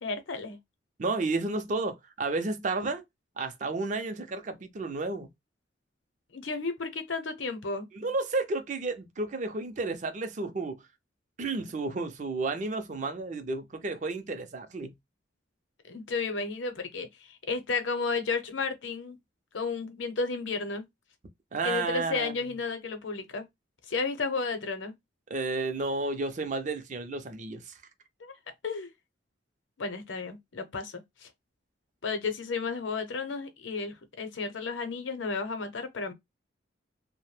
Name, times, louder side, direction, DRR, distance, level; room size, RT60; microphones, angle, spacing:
voice 1, 0.0-0.6 6.3-7.9 15.9-19.2 19.5-20.8 21.6-23.5 23.9-24.9 28.2-28.3 28.6-28.9 29.8-31.3 32.0-36.1, left 4 dB, 85° left, 0.7 m, -33 dB
voice 2, 1.0-3.0 3.4-5.3 7.9-10.8 11.4-14.9 21.5-22.4 25.3-27.8, right 3 dB, 40° right, 0.5 m, -32 dB
2.7 x 2.1 x 3.1 m
head